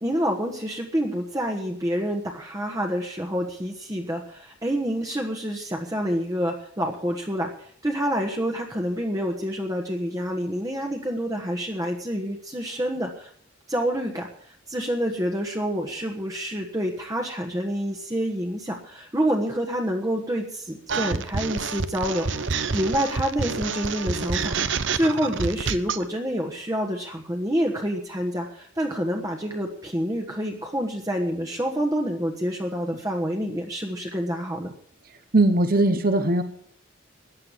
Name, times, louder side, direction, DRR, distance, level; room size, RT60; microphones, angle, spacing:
voice 1, 0.0-13.3 13.7-24.6 24.9-34.7, equal, 20° right, 1 dB, 1.3 m, -28 dB
sound 1, 20.9-26.0, right 5 dB, 70° right, 0.9 m, -27 dB
voice 2, 35.3-36.4, right 2 dB, 50° right, 9 dB, 1.1 m, -19 dB
14.5 x 9.9 x 7.4 m, 0.63 s
head